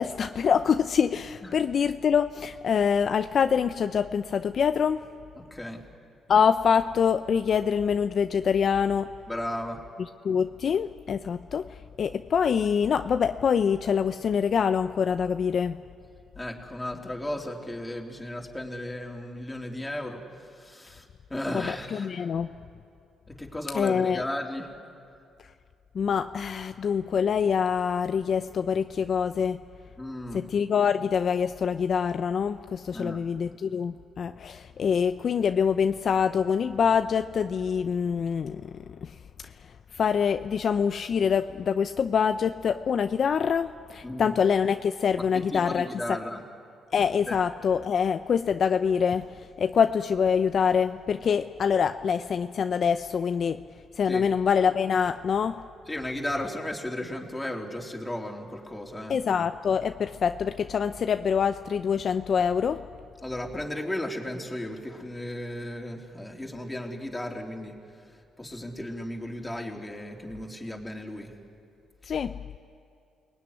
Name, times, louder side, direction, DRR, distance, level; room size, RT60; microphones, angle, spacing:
voice 1, 0.0-5.1 6.3-9.1 10.2-11.7 12.0-15.8 21.6-22.5 23.7-24.2 25.9-29.6 30.3-38.7 39.0-39.1 39.9-46.2 46.9-49.2 49.6-53.6 54.0-55.6 59.1-62.8 72.1-72.3, left 7 dB, 55° left, 9 dB, 0.6 m, -25 dB
voice 2, 5.4-5.8 9.3-9.8 16.4-20.2 20.5-22.3 23.3-24.7 30.0-30.5 32.9-33.2 44.0-44.3 45.2-46.4 47.3-47.4 54.1-54.3 55.9-59.2 63.2-67.7 68.4-71.3, left 1 dB, 10° left, 0 dB, 3.5 m, -35 dB
28.5 x 20.0 x 9.8 m, 2.4 s
cardioid pair, 90°, 0 cm